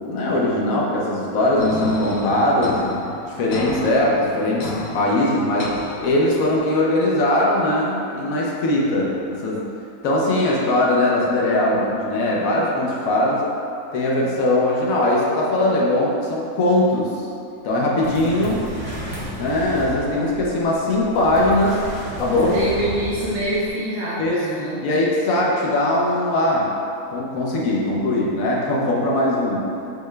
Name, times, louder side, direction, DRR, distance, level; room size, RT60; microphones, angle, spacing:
voice 1, 0.0-3.0 3.3-5.7 6.0-9.7 10.0-13.4 13.9-17.2 17.6-18.7 19.4-21.8 22.2-22.6 24.2-24.5 24.8-26.7 27.1-29.7, left 1 dB, 65° left, -4 dB, 1.0 m, -20 dB
sound 1, 1.6-6.6, left 4 dB, 90° left, 1.2 m, -33 dB
sound 2, 18.0-23.7, equal, 40° left, 1.3 m, -33 dB
voice 2, 22.5-24.8, right 1 dB, 90° right, -8 dB, 1.3 m, -25 dB
6.5 x 2.2 x 3.2 m, 2.6 s
omnidirectional pair, 1.7 m